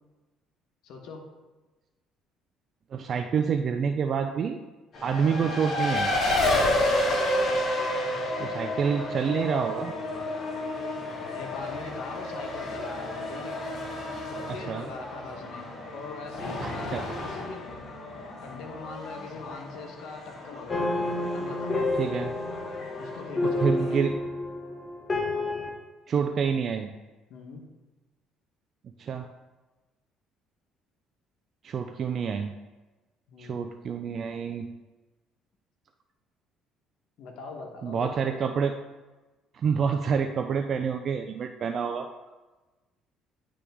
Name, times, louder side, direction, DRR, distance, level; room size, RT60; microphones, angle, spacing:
voice 1, 0.8-1.3 5.2-5.5 6.6-7.0 11.3-13.6 14.3-17.7 18.4-20.8 21.3-21.8 23.0-24.1 27.3-27.6 33.3-33.8 37.2-38.7, left 4 dB, 75° left, 2 dB, 1.1 m, -42 dB
voice 2, 2.9-4.6 5.0-6.1 8.4-9.9 14.5-14.9 16.6-17.0 22.0-22.3 23.4-24.2 26.1-26.9 29.0-29.3 31.6-32.5 33.4-34.7 37.8-38.7 39.5-42.1, right 6 dB, 50° right, 6 dB, 0.4 m, -28 dB
Race car auto racing, 4.9-24.1, left 1 dB, 45° left, 1.7 m, -31 dB
sound 1, 20.7-25.7, left 2 dB, 25° left, 1.2 m, -29 dB
10.0 x 3.4 x 3.5 m, 1.2 s
supercardioid pair, 85°, 0 cm